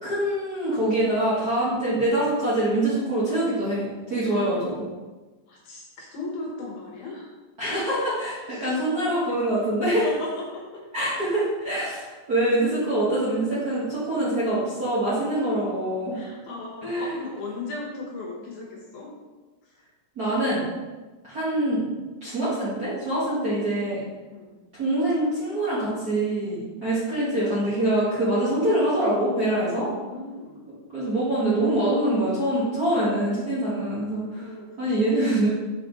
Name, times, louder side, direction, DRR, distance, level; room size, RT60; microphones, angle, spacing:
voice 1, 0.0-4.8 7.6-10.0 10.9-16.1 16.8-17.2 20.1-20.7 21.2-21.8 22.2-24.0 24.8-29.9 30.9-34.5 34.8-35.5, right 1 dB, 40° right, -11 dB, 1.5 m, -24 dB
voice 2, 4.2-4.6 5.5-7.3 8.5-8.9 10.0-10.8 15.4-15.6 16.1-19.1 19.7-19.8 24.3-24.5 29.7-30.6 34.3-34.7 35.0-35.1, left 3 dB, 65° left, -3 dB, 2.4 m, -37 dB
5.9 x 5.1 x 4.0 m, 1.2 s
omnidirectional pair, 3.9 m